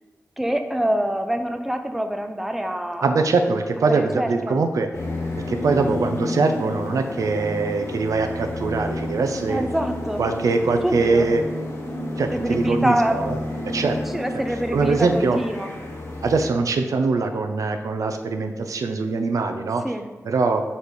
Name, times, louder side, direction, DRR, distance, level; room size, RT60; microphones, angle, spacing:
voice 1, 0.4-3.1 3.9-4.6 9.5-10.3 10.6-11.3 12.3-13.2 14.1-15.7 19.8-20.1, right 1 dB, 5° right, 5 dB, 0.5 m, -25 dB
voice 2, 3.0-4.9 5.5-9.6 10.2-11.4 12.2-13.4 13.6-14.0 14.7-15.4 16.2-19.8 20.2-20.6, right 4 dB, 80° right, 6 dB, 0.5 m, -22 dB
sound 1, 4.9-16.4, left 1 dB, 55° left, 1.3 m, -31 dB
5.2 x 4.1 x 4.8 m, 1.2 s
wide cardioid pair, 120°, 6 cm